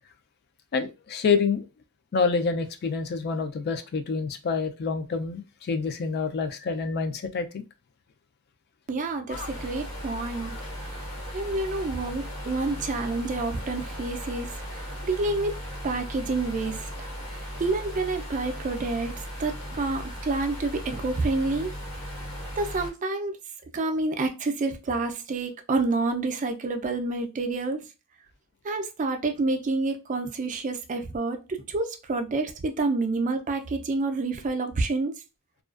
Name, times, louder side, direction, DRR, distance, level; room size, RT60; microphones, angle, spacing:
voice 1, 0.7-1.7 2.1-7.6 9.3-9.5 10.4-10.5, left 5 dB, 45° left, 0.3 m, -27 dB
voice 2, 8.9-10.6 10.8-11.1 11.3-15.6 15.8-21.7 22.6-23.3 23.7-27.8 28.6-35.1, right 3 dB, 35° right, 0.4 m, -28 dB
sound 1, 9.3-22.9, equal, 70° left, 0.9 m, -37 dB
2.4 x 2.2 x 2.3 m
head